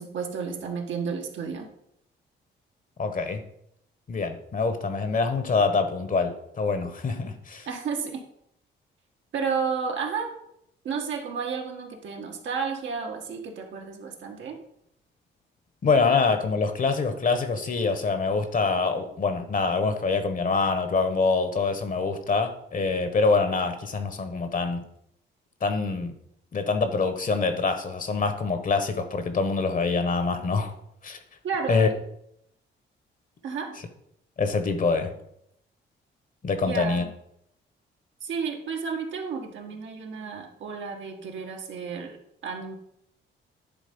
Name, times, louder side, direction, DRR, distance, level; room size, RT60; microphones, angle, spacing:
voice 1, 0.0-1.7 7.7-8.2 9.3-10.3 10.8-14.6 31.4-31.9 33.4-33.8 36.6-37.1 38.2-42.2 42.4-42.8, right 5 dB, 75° right, 2 dB, 1.5 m, -32 dB
voice 2, 3.0-3.4 4.1-7.7 15.8-24.8 25.6-26.1 26.5-30.7 31.0-31.2 31.7-31.9 34.4-35.1 36.4-37.0, left 4 dB, 45° left, 9 dB, 1.2 m, -25 dB
10.0 x 3.7 x 5.3 m, 0.74 s
cardioid pair, 90°, 20 cm